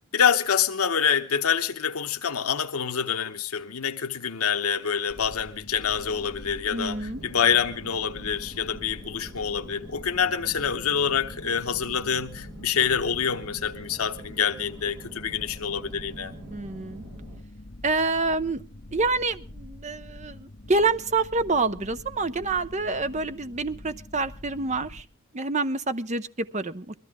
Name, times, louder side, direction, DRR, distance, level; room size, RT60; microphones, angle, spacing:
voice 1, 0.1-16.3, left 7 dB, 90° left, 0.9 m, -26 dB
sound 1, 5.1-25.0, left 1 dB, 45° left, 1.1 m, -45 dB
voice 2, 6.7-7.2 16.5-17.0 17.8-18.6 18.9-25.1 25.3-26.9, right 3 dB, 35° right, 0.7 m, -27 dB
sound 2, 7.1-17.4, right 2 dB, 65° right, 1.5 m, -46 dB
21.5 x 14.0 x 3.6 m
head